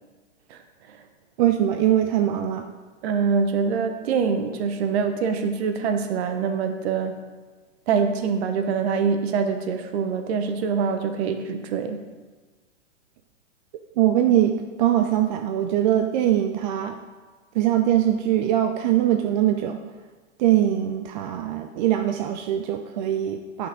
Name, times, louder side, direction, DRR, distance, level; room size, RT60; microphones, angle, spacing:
voice 1, 1.4-2.7 14.0-17.0 17.5-19.8 20.4-23.7, right 11 dB, 40° right, 5 dB, 0.4 m, -22 dB
voice 2, 3.0-7.2 7.9-12.0, right 6 dB, 55° right, 7 dB, 1.0 m, -24 dB
9.6 x 5.9 x 3.7 m, 1.3 s
hypercardioid pair, 125°, 38 cm